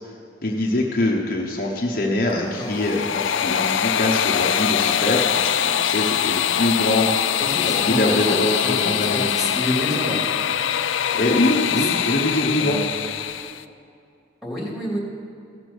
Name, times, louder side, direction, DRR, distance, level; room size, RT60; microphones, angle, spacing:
voice 1, 0.4-9.3 11.1-12.8, left 1 dB, 45° left, -1 dB, 1.0 m, -23 dB
voice 2, 2.3-2.8 7.4-10.2 11.5-11.9 12.6-12.9 14.4-15.0, left 1 dB, ahead, -5 dB, 2.8 m, -29 dB
sound 1, 2.5-13.6, left 9 dB, 80° left, 0.4 m, -23 dB
16.0 x 6.8 x 6.2 m, 2.5 s
head